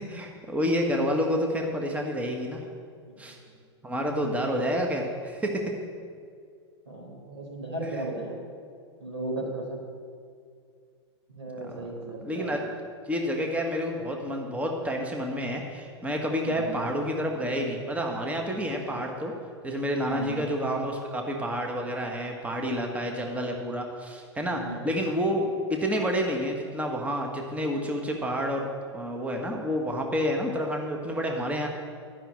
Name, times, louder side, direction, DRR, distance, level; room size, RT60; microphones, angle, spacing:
voice 1, 0.0-2.6 3.2-3.4 3.8-5.7 7.8-8.1 11.6-11.8 12.2-12.7 13.1-19.3 19.6-31.7, equal, 10° right, 1 dB, 1.4 m, -29 dB
voice 2, 6.9-8.4 9.0-9.8 11.3-12.5 16.4-16.7 18.8-18.9 20.0-20.4 24.5-24.8, right 2 dB, 80° right, -1 dB, 4.0 m, -35 dB
12.0 x 6.4 x 8.8 m, 2.2 s
hypercardioid pair, 100°, 15 cm